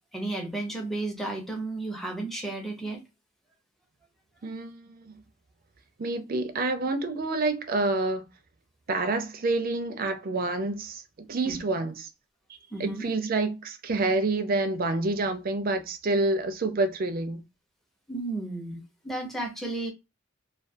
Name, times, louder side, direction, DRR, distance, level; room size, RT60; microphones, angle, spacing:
voice 1, 0.1-3.0 11.4-11.6 12.7-13.1 18.1-19.9, right 2 dB, ahead, 0.6 m, -33 dB
voice 2, 4.4-5.2 6.0-8.3 8.9-11.0 11.3-12.1 12.8-17.4, right 2 dB, 45° right, 0.4 m, -28 dB
2.3 x 2.2 x 2.5 m
head